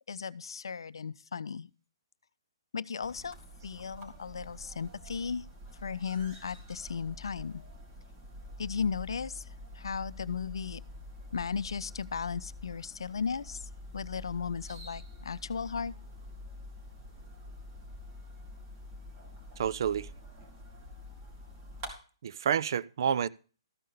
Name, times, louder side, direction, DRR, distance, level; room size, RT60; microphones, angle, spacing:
voice 1, 0.1-1.7 2.7-3.4 3.6-5.4 5.8-7.6 8.6-9.5 9.7-10.8 11.3-15.9, left 6 dB, 70° left, 0.5 m, -36 dB
sound 1, 3.0-21.9, left 1 dB, 30° right, 3.6 m, -47 dB
voice 2, 19.6-20.1 22.2-23.3, right 8 dB, 55° right, 0.5 m, -29 dB
14.0 x 5.5 x 6.7 m
figure-of-eight pair, 130°, 3 cm